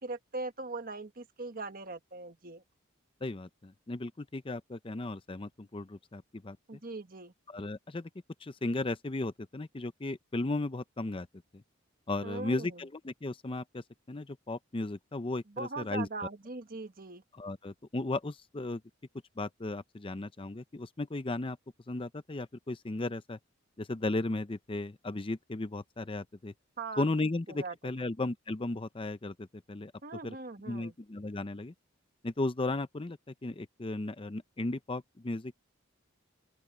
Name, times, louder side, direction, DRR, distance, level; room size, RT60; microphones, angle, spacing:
voice 1, 0.0-2.6 6.7-7.3 12.2-12.8 15.5-17.2 26.8-27.0 27.6-27.7 30.0-30.9, right 3 dB, 45° right, 1.5 m, -40 dB
voice 2, 3.2-6.6 7.5-8.1 8.4-11.3 11.5-11.6 12.1-16.3 17.3-18.8 19.4-21.6 21.9-23.4 23.8-26.5 27.0-29.9 30.2-30.4 30.7-31.7 32.2-35.5, left 2 dB, 25° left, 0.6 m, -35 dB
open air
head